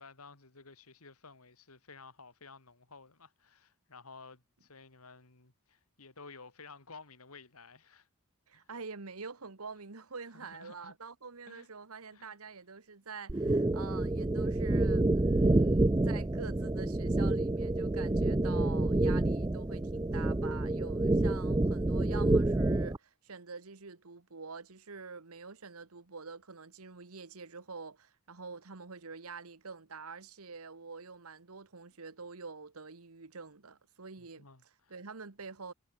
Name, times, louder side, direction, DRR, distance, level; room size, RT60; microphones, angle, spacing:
voice 1, 0.0-8.1 8.5-8.7 10.3-10.9 11.5-11.7 12.1-12.4 34.2-34.9, left 4 dB, 90° left, 2.8 m, -54 dB
voice 2, 8.5-34.5 34.9-35.7, right 4 dB, 85° right, 1.4 m, -46 dB
sound 1, 13.3-23.0, right 2 dB, 15° right, 0.4 m, -28 dB
head